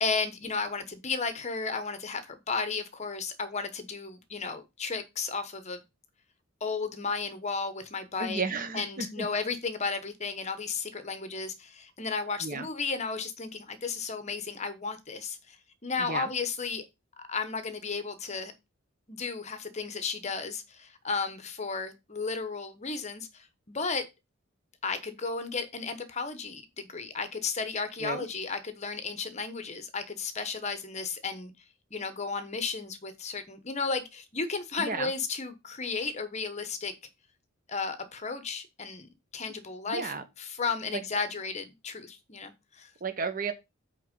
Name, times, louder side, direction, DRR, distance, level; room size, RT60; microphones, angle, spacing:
voice 1, 0.0-5.8 6.6-8.4 8.7-15.6 15.8-16.8 17.3-18.5 19.1-24.0 24.8-31.5 31.9-36.9 37.7-39.1 39.3-42.9, left 4 dB, 35° left, 1.0 m, -34 dB
voice 2, 8.2-9.3 12.4-12.7 16.0-16.3 28.0-28.2 34.8-35.1 39.9-40.2 40.9-41.0 43.0-43.5, right 4 dB, 45° right, 1.0 m, -33 dB
8.5 x 3.7 x 5.2 m
head